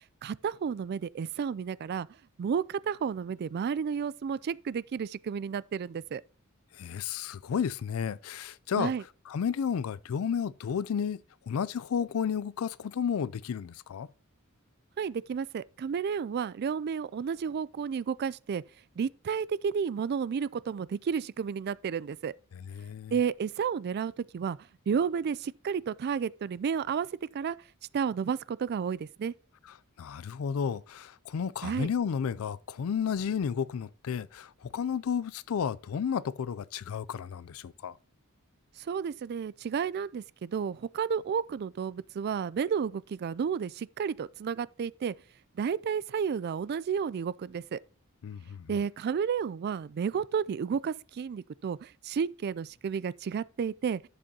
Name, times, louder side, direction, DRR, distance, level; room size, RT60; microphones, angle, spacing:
voice 1, 0.2-2.1 2.4-6.2 8.8-9.0 15.0-18.6 19.0-22.3 23.1-24.6 24.9-27.1 27.3-27.6 27.9-29.3 31.6-31.9 38.9-45.1 45.6-47.8 48.7-54.0, right 6 dB, 50° right, 0.3 m, -31 dB
voice 2, 6.8-8.9 9.3-11.2 11.5-14.1 22.5-23.1 30.0-37.9 48.2-48.7, left 7 dB, 75° left, 0.4 m, -32 dB
11.0 x 7.6 x 2.8 m
head